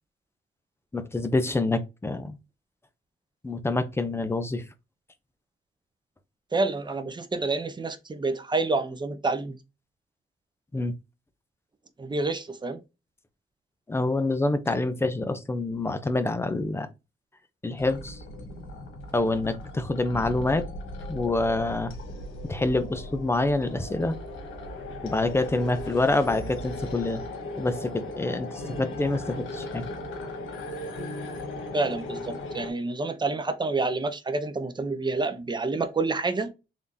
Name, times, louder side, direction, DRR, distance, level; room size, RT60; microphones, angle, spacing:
voice 1, 0.9-2.4 3.4-4.6 10.7-10.9 13.9-16.9 17.6-18.2 19.1-20.7 21.1-21.9 22.5-24.2 25.0-27.2 27.6-29.8, left 2 dB, 10° left, 0.6 m, -26 dB
voice 2, 6.5-9.6 12.0-12.8 31.7-36.5, right 3 dB, 20° right, 0.7 m, -28 dB
sound 1, 17.8-32.7, left 1 dB, 80° left, 1.4 m, -37 dB
3.8 x 3.4 x 2.7 m
cardioid pair, 90°, 20 cm